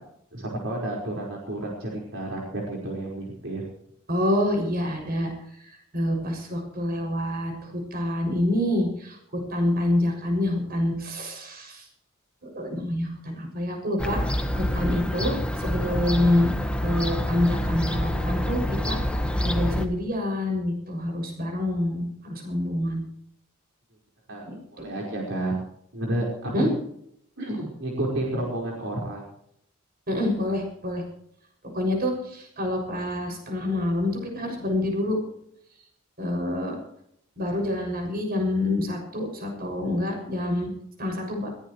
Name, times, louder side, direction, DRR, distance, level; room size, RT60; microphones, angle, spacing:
voice 1, 0.3-3.7 24.3-24.5 24.7-25.6 25.9-26.7 27.4-29.2, right 1 dB, 65° right, -2 dB, 5.0 m, -30 dB
voice 2, 4.1-5.3 5.9-11.8 12.5-14.2 14.5-16.5 16.8-19.0 19.4-23.0 24.4-25.0 26.5-26.7 30.1-31.0 31.7-35.2 36.2-36.8 37.4-40.7 41.0-41.5, left 1 dB, 50° right, 2 dB, 6.8 m, -27 dB
Fowl / Gull seagull, 14.0-19.9, equal, 5° left, 1.6 m, -27 dB
21.5 x 18.0 x 3.2 m, 0.72 s
head